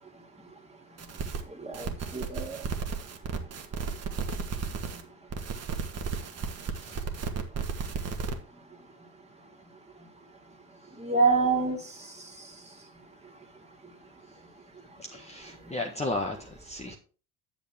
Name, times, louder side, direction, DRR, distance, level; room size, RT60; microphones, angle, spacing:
voice 1, 0.1-8.0 8.3-15.8 16.8-17.0, right 4 dB, 15° right, 2 dB, 2.6 m, -35 dB
sound 1, 1.0-1.4 1.7-5.0 5.3-8.3, right 5 dB, 35° right, 1.7 m, -34 dB
voice 2, 15.0-16.9, left 2 dB, 15° left, 1 dB, 1.5 m, -34 dB
10.5 x 6.8 x 3.5 m, 0.37 s
figure-of-eight pair, 55°, 45 cm